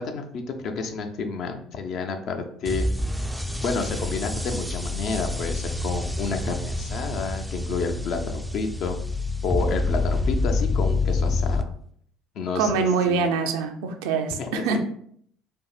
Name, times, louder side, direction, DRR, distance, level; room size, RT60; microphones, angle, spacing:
voice 1, 0.0-2.9 3.6-9.0 9.4-11.6 12.4-13.3 14.4-14.8, left 4 dB, 60° left, 5 dB, 0.5 m, -30 dB
sound 1, 2.7-11.6, left 2 dB, ahead, 0.3 m, -27 dB
voice 2, 12.5-14.8, right 5 dB, 75° right, 5 dB, 0.4 m, -24 dB
4.5 x 2.5 x 2.4 m, 0.65 s
hypercardioid pair, 60°, 0 cm